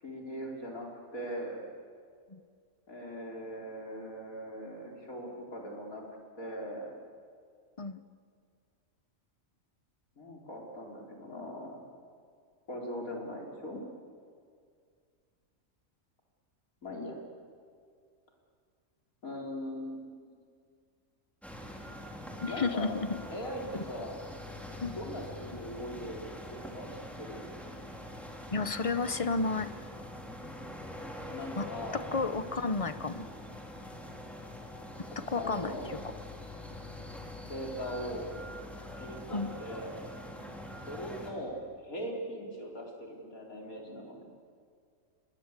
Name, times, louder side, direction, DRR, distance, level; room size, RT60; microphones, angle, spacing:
voice 1, 0.0-1.7 2.9-6.0 6.3-6.9 10.2-11.8 12.7-13.8 16.8-17.2 19.2-20.3 22.5-22.9 23.3-24.2 24.9-27.5 31.3-32.0 35.1-35.9 37.4-38.3 39.0-40.0 40.9-44.3, equal, 80° left, -1 dB, 4.7 m, -40 dB
sound 1, 21.4-41.3, left 1 dB, ahead, 3.4 m, -44 dB
voice 2, 22.4-23.2 23.7-23.8 24.8-25.0 28.5-29.7 31.6-31.7 31.9-33.2 35.3-36.1 39.3-39.5, left 4 dB, 30° left, 12 dB, 0.8 m, -32 dB
27.5 x 22.0 x 8.3 m, 2.2 s
omnidirectional pair, 1.4 m